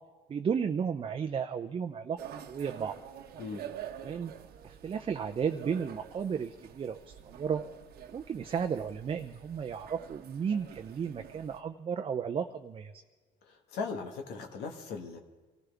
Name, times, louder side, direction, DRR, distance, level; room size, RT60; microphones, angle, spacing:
voice 1, 0.3-2.2 2.5-2.9 4.0-4.3 4.6-7.6 8.1-12.9, right 7 dB, 35° right, 5 dB, 0.6 m, -33 dB
sound 1, 2.2-11.6, right 9 dB, 65° right, 1.1 m, -47 dB
voice 2, 13.4-15.2, left 5 dB, 80° left, 3 dB, 1.7 m, -38 dB
24.5 x 15.0 x 3.5 m, 1.3 s
cardioid pair, 110°, 17 cm